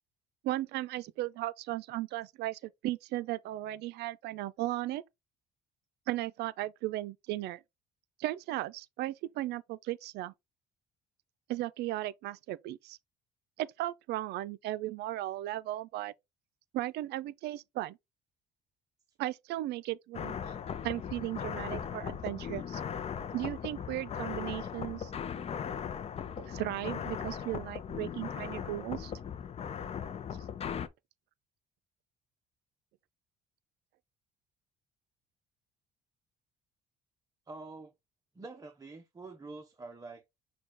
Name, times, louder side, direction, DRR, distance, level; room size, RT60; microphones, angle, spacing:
voice 1, 0.4-5.0 6.1-7.6 8.2-10.3 11.5-13.0 13.6-16.1 16.7-18.0 19.2-20.4 20.8-22.8 23.3-25.1 26.4-29.1, right 15 dB, 75° right, 0.5 m, -36 dB
sound 1, 20.1-30.9, left 8 dB, 35° left, 0.5 m, -38 dB
voice 2, 37.5-37.9 38.3-40.2, right 3 dB, 20° right, 0.7 m, -46 dB
6.2 x 2.3 x 3.5 m
cardioid pair, 110°, 17 cm